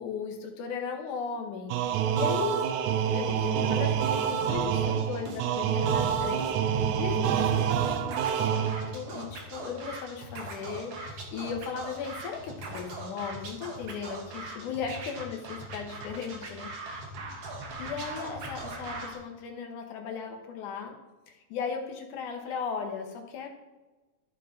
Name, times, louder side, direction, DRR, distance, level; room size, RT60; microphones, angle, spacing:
voice 1, 0.0-2.6 3.1-16.7 17.8-21.0 21.3-23.5, left 6 dB, 80° left, 3 dB, 2.6 m, -37 dB
sound 1, 1.7-9.1, right 9 dB, 80° right, 2.0 m, -27 dB
Scratching (performance technique), 3.2-19.1, right 2 dB, 60° right, 2.1 m, -39 dB
13.5 x 4.6 x 3.9 m, 1.2 s
omnidirectional pair, 3.5 m